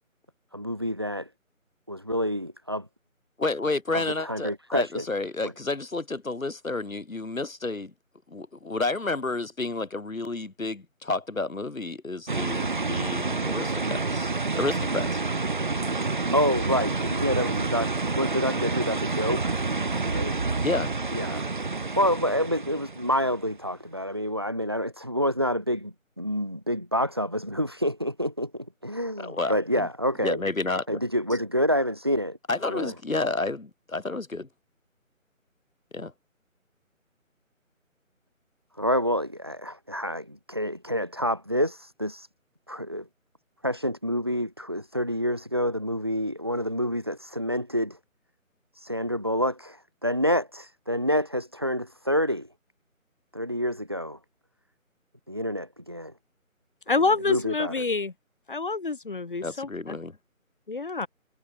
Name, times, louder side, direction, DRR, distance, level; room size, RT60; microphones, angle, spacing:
voice 1, 0.5-1.3 1.9-2.9 3.9-5.0 5.4-5.5 16.3-19.6 20.1-20.3 21.1-21.5 21.9-30.4 30.9-32.4 32.7-32.9 38.8-42.3 42.7-43.1 43.6-48.0 48.7-52.5 53.3-54.2 55.3-56.1 57.0-57.8, equal, 20° right, 1.1 m, -28 dB
voice 2, 3.4-7.9 8.3-15.2 20.6-20.9 29.2-29.9 30.2-31.0 32.5-34.5 35.9-36.1 59.4-60.2, left 3 dB, 70° left, 5.3 m, -30 dB
sound 1, 12.3-23.5, right 3 dB, 35° right, 2.3 m, -28 dB
voice 3, 56.9-58.1 58.5-60.0 60.7-61.1, left 3 dB, 40° left, 3.5 m, -27 dB
figure-of-eight pair, 175°, 41 cm